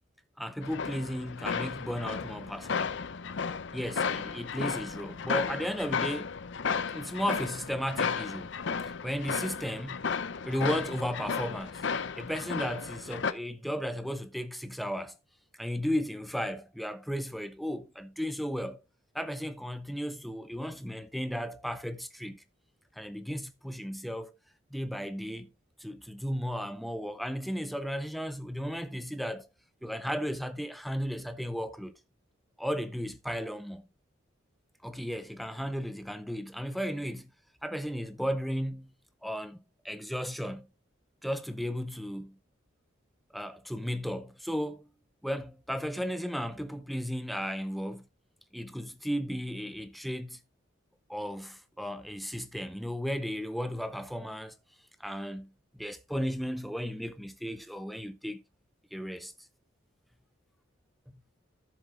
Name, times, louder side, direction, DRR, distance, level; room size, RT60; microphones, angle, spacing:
voice 1, 0.4-3.0 3.7-6.4 6.9-8.5 8.8-10.1 10.4-11.8 12.2-15.2 15.5-18.8 19.1-22.4 23.0-24.3 24.7-25.5 25.8-29.5 29.8-32.0 32.6-33.9 34.8-37.3 37.6-38.9 39.2-40.7 41.2-42.4 43.3-44.9 45.2-48.1 48.5-50.4 51.1-54.5 55.0-58.4 58.9-59.3, equal, ahead, 0.6 m, -35 dB
sound 1, 0.6-13.3, left 5 dB, 65° left, 0.6 m, -34 dB
13.0 x 7.1 x 2.4 m
head